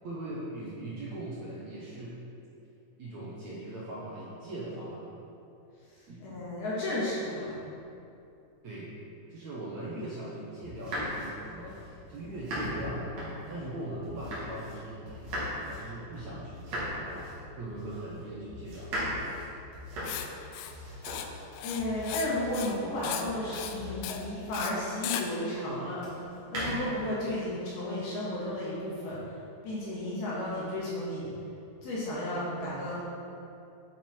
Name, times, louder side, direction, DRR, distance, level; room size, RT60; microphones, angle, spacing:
voice 1, 0.0-2.2 3.0-5.2 6.1-6.2 8.6-8.9 9.3-13.2 13.5-15.3 15.6-18.9, right 1 dB, 75° right, -7 dB, 1.6 m, -40 dB
voice 2, 6.2-7.6 20.7-21.0 21.6-26.0 26.5-29.2 29.6-31.3 31.8-33.0, left 1 dB, 65° left, -8 dB, 3.4 m, -33 dB
sound 1, 10.6-14.8 15.1-25.0 26.0-27.1, equal, 45° right, 3.1 m, -38 dB
Writing, 20.0-20.3 20.5-20.7 21.0-21.3 21.5-22.3 22.5-22.8 23.0-23.3 23.5-23.8 24.0-24.2 24.5-24.7 25.0-25.2, left 10 dB, 80° left, 2.4 m, -36 dB
9.3 x 8.2 x 4.5 m, 2.7 s
omnidirectional pair, 5.0 m